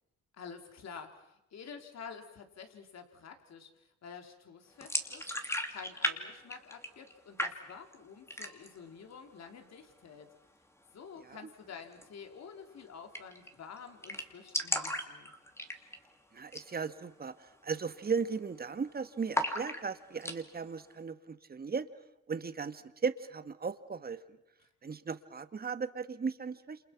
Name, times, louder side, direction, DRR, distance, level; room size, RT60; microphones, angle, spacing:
voice 1, 0.3-5.3 5.7-10.3 10.9-15.3, left 6 dB, 60° left, 5 dB, 3.5 m, -49 dB
sound 1, 4.8-6.2 6.4-7.1 7.4-7.9 8.3-8.8 9.1-9.2 9.6-10.2 11.9-12.1 12.4-12.5 12.7-12.8 13.1-13.5 13.8-13.9 14.0-16.1 16.4-16.7 17.0-17.1 17.7-18.0 18.2-18.8 19.3-20.4, left 1 dB, 10° left, 2.6 m, -35 dB
voice 2, 16.3-21.9 22.3-24.2 24.8-26.8, right 5 dB, 30° right, 11 dB, 1.5 m, -36 dB
28.5 x 28.0 x 5.9 m, 0.87 s
cardioid pair, 90°, 30 cm